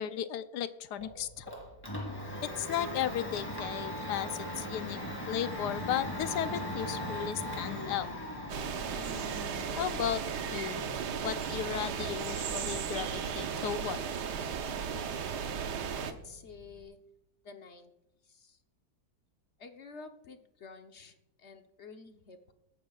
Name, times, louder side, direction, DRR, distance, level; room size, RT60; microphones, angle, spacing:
voice 1, 0.0-1.5 2.4-4.3 4.6-5.0 5.3-8.1 9.8-10.2 10.5-10.8 11.2-14.0, left 10 dB, 80° left, 11 dB, 1.3 m, -35 dB
Domestic sounds home sounds, 1.0-16.8, equal, 15° left, 3.2 m, -41 dB
sound 1, 8.5-16.1, right 7 dB, 75° right, 1.5 m, -35 dB
voice 2, 16.0-17.0 17.4-17.9 18.3-18.6 19.6-22.5, left 4 dB, 45° left, 5 dB, 1.1 m, -50 dB
23.0 x 11.0 x 2.4 m, 0.86 s
omnidirectional pair, 1.8 m